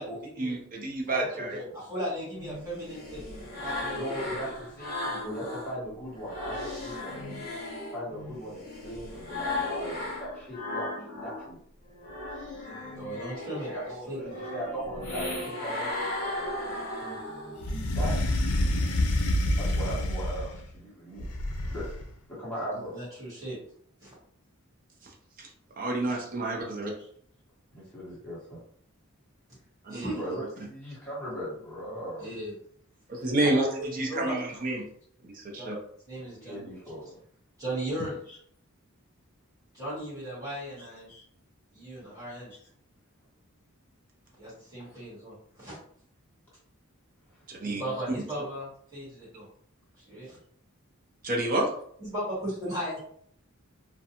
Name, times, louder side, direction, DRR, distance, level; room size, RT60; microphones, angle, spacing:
voice 1, 0.4-1.6 25.4-25.5 25.8-26.9 29.8-30.1 33.1-33.7 33.9-34.8 35.2-35.8 47.5-47.8 48.1-48.2 51.2-51.7, right 2 dB, 40° right, -1 dB, 0.6 m, -29 dB
voice 2, 1.1-1.9 3.9-7.5 7.9-10.9 11.1-11.6 13.7-18.1 19.6-21.2 21.7-21.8 22.3-22.9 27.0-27.1 27.7-28.6 30.2-32.3 36.1-37.2 38.3-38.4 40.8-41.2 42.5-42.7, equal, 5° left, -10 dB, 1.2 m, -39 dB
voice 3, 1.9-3.2 3.6-4.5 12.6-13.7 14.1-14.3 22.7-23.6 24.0-24.1 29.9-30.2 32.2-32.5 33.4-34.6 35.5-35.7 36.1-36.7 37.6-38.2 39.7-41.1 41.7-42.5 44.4-45.8 47.6-49.5 50.0-50.4 52.0-53.0, right 1 dB, 15° right, -8 dB, 1.3 m, -37 dB
sound 1, 2.3-5.7 6.1-11.5 11.9-17.7, left 2 dB, 40° left, 1.0 m, -36 dB
sound 2, 17.6-20.6 21.2-22.1, left 1 dB, 85° left, 0.5 m, -27 dB
2.5 x 2.2 x 2.8 m, 0.63 s
head